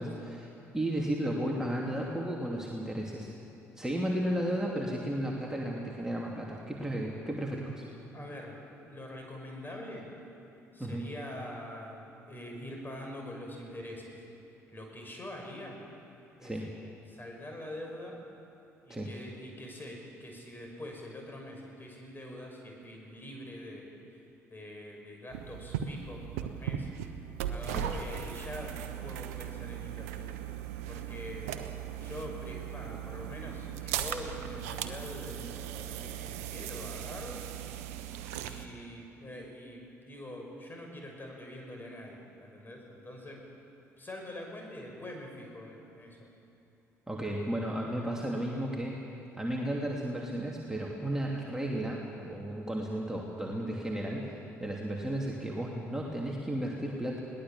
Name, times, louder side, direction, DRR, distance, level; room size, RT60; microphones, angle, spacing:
voice 1, 0.0-3.3 3.8-7.8 10.8-11.0 16.4-16.7 18.9-19.1 27.7-27.8 47.1-49.0 49.4-57.2, right 1 dB, 5° right, -2 dB, 2.9 m, -34 dB
voice 2, 8.1-8.5 8.8-10.1 10.7-14.2 14.7-15.8 16.4-16.6 17.1-18.2 18.8-24.2 24.5-30.3 30.9-37.4 38.4-43.4 44.0-46.3, left 1 dB, 25° left, 1 dB, 6.2 m, -44 dB
sound 1, 25.3-38.7, right 10 dB, 70° right, 1.0 m, -38 dB
22.0 x 18.5 x 7.5 m, 2.8 s
figure-of-eight pair, 50°, 8 cm